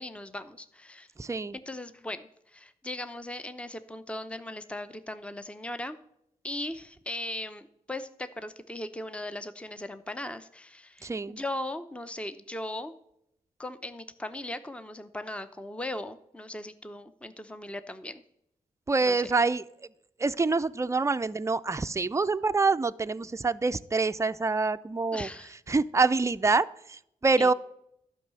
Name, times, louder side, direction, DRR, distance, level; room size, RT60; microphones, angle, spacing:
voice 1, 0.0-1.1 1.7-6.0 6.4-12.9 13.6-18.2 19.0-19.3 25.1-25.6 27.4-27.5, left 1 dB, 10° left, 11 dB, 0.8 m, -38 dB
voice 2, 1.2-1.6 11.0-11.4 18.9-19.6 20.2-25.3 25.7-27.5, right 3 dB, 20° right, 11 dB, 0.5 m, -26 dB
11.5 x 5.6 x 7.5 m, 0.77 s
supercardioid pair, 40°, 15 cm